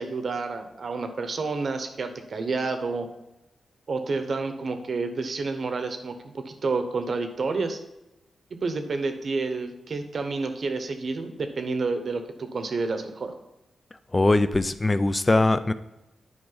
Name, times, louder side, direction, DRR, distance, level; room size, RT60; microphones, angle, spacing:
voice 1, 0.0-3.1 3.9-7.8 8.5-13.3, right 3 dB, 55° right, 7 dB, 0.9 m, -29 dB
voice 2, 14.1-15.7, left 2 dB, 20° left, 13 dB, 0.4 m, -21 dB
9.5 x 5.1 x 4.0 m, 0.95 s
wide cardioid pair, 100°, 0 cm